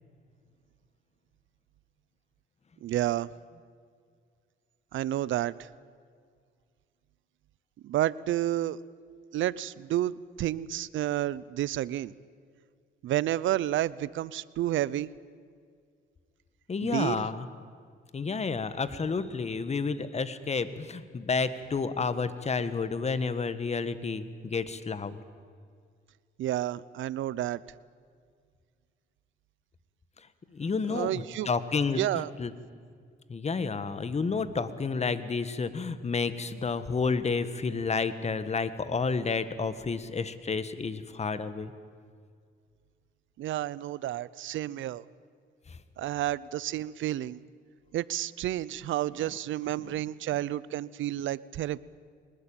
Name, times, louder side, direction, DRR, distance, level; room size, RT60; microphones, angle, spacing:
voice 1, 2.8-3.3 4.9-5.7 7.8-8.8 9.3-12.1 13.0-15.1 16.8-17.3 26.4-27.6 30.9-31.5 32.0-32.3 43.4-45.0 46.0-47.4 47.9-51.9, right 13 dB, 75° right, 20 dB, 0.7 m, -30 dB
voice 2, 16.7-17.5 18.1-25.2 30.5-32.5 33.3-41.7 45.7-45.8, left 4 dB, 35° left, 13 dB, 1.7 m, -30 dB
24.0 x 20.0 x 9.0 m, 2.1 s
cardioid pair, 90°, 20 cm